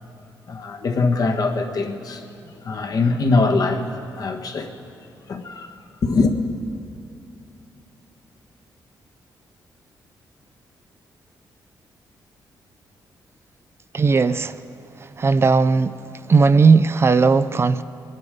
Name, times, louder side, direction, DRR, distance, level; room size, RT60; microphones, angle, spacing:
voice 1, 0.5-2.2 2.6-3.8 4.2-4.7 5.3-5.7 6.0-6.3, left 3 dB, 60° left, 3 dB, 1.4 m, -22 dB
voice 2, 13.9-14.6 15.0-15.9 16.3-17.8, right 4 dB, 35° right, 13 dB, 0.4 m, -16 dB
23.0 x 11.0 x 5.1 m, 2.6 s
cardioid pair, 90°, 8 cm